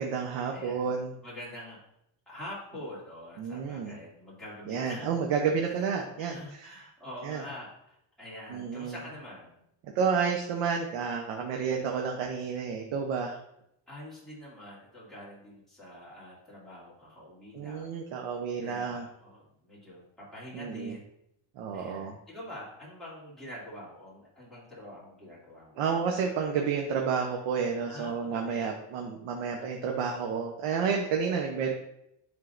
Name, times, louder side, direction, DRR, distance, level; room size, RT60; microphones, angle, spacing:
voice 1, 0.0-1.1 3.4-4.0 4.7-6.7 7.2-7.4 8.5-9.0 9.8-13.4 17.5-19.0 20.5-21.0 21.6-22.1 25.8-31.7, right 6 dB, 75° right, 2 dB, 1.0 m, -30 dB
voice 2, 0.5-0.9 1.2-1.8 2.3-5.1 5.6-9.6 13.9-18.0 18.6-21.1 21.7-25.8 27.9-28.7, left 1 dB, ahead, -9 dB, 2.4 m, -45 dB
10.5 x 3.7 x 2.5 m, 0.78 s
cardioid pair, 165°, 49 cm